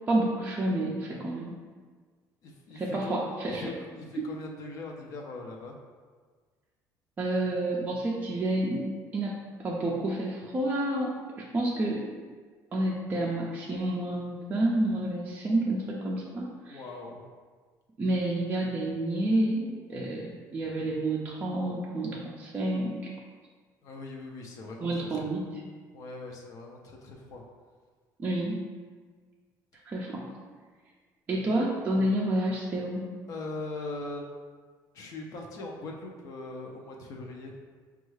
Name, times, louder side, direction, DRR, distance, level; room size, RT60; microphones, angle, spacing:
voice 1, 0.1-1.5 2.7-3.7 7.2-8.9 9.1-11.1 11.4-12.1 12.7-16.8 18.0-23.1 24.8-25.4 28.2-28.6 29.9-30.2 31.3-33.1, right 1 dB, 20° right, -4 dB, 0.4 m, -29 dB
voice 2, 2.4-3.1 3.5-5.8 16.7-17.2 23.8-25.2 25.9-27.4 33.3-34.2 34.9-37.5, left 2 dB, 50° left, 0 dB, 0.5 m, -40 dB
5.2 x 2.3 x 3.2 m, 1.5 s
cardioid pair, 155°, 7 cm